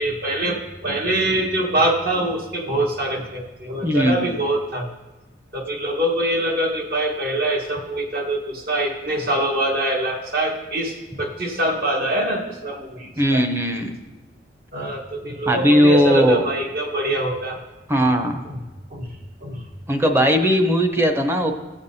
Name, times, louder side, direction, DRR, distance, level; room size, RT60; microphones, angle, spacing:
voice 1, 0.0-4.8 5.5-13.4 14.7-17.6 18.0-18.1 18.4-18.6 18.9-19.1 19.4-19.6, right 1 dB, 55° right, 0 dB, 1.2 m, -24 dB
voice 2, 3.8-4.3 13.2-14.0 15.5-16.5 17.9-18.4 19.9-21.5, equal, 15° right, 5 dB, 0.6 m, -18 dB
13.5 x 7.1 x 2.7 m, 1.1 s
head